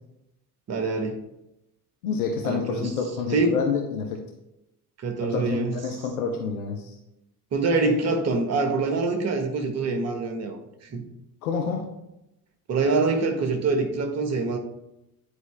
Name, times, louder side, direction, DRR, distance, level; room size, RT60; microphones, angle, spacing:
voice 1, 0.7-1.2 2.4-2.9 3.3-3.6 5.0-5.8 7.5-11.0 12.7-14.6, right 3 dB, 35° right, 5 dB, 1.3 m, -25 dB
voice 2, 2.0-4.2 5.2-7.0 11.4-11.9, left 5 dB, 70° left, 3 dB, 0.9 m, -28 dB
9.8 x 4.6 x 3.3 m, 0.87 s
figure-of-eight pair, 60°, 46 cm